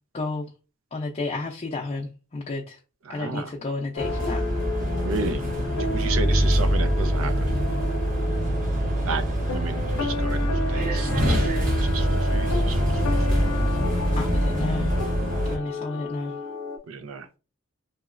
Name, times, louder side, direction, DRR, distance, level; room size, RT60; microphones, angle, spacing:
voice 1, 0.1-0.5 0.9-2.8 3.1-4.5 14.2-16.4, left 3 dB, 30° left, 0.5 m, -32 dB
voice 2, 3.1-3.5 5.0-5.4 5.8-7.5 9.0-9.2 9.5-11.5 11.8-12.8 13.1-13.4 16.9-17.3, right 4 dB, 85° right, 0.5 m, -33 dB
sound 1, 3.9-16.8, left 2 dB, 85° left, 0.6 m, -33 dB
sound 2, 4.0-15.6, equal, 40° right, 0.9 m, -24 dB
3.0 x 2.8 x 2.5 m
head